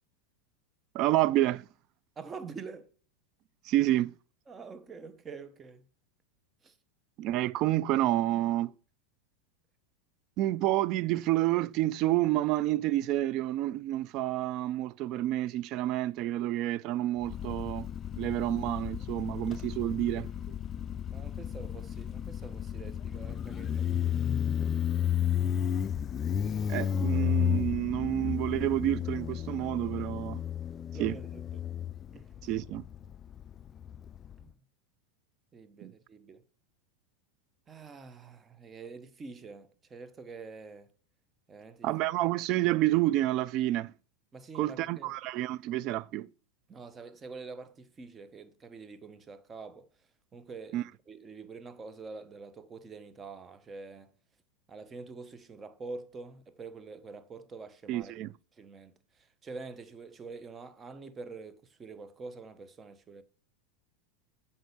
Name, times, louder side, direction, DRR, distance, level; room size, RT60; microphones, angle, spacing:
voice 1, 0.9-1.6 3.6-4.1 7.2-8.7 10.4-17.9 18.2-20.3 26.7-30.4 31.0-31.2 32.4-32.8 35.8-35.9 41.8-43.9 44.5-46.3 50.7-50.8 57.9-58.3, right 15 dB, 50° right, 0.4 m, -29 dB
voice 2, 2.2-2.9 4.5-5.8 6.6-6.7 21.1-23.9 30.9-31.7 32.1-32.3 34.4-34.5 35.5-36.4 37.7-40.9 41.5-41.9 44.3-45.1 46.7-49.9 50.3-54.1 54.7-58.1 58.6-63.2, right 4 dB, 20° right, 0.9 m, -46 dB
Motorcycle, 17.2-34.4, left 9 dB, 30° left, 0.4 m, -33 dB
7.7 x 5.7 x 7.0 m
hypercardioid pair, 115°, 0 cm